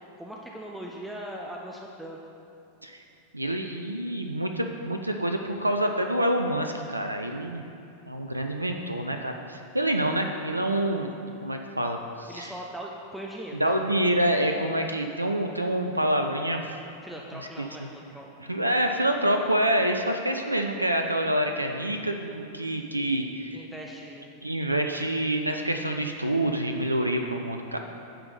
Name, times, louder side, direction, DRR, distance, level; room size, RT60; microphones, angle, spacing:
voice 1, 0.2-2.2 12.3-13.7 17.0-18.3 18.6-18.8 23.5-24.4, right 1 dB, 5° right, -2 dB, 0.7 m, -40 dB
voice 2, 3.3-7.6 8.1-11.1 11.4-12.5 13.6-16.6 17.6-17.7 18.5-23.7 24.4-27.8, right 1 dB, 85° right, 4 dB, 0.4 m, -27 dB
10.0 x 3.8 x 6.6 m, 2.6 s
figure-of-eight pair, 90°, 0 cm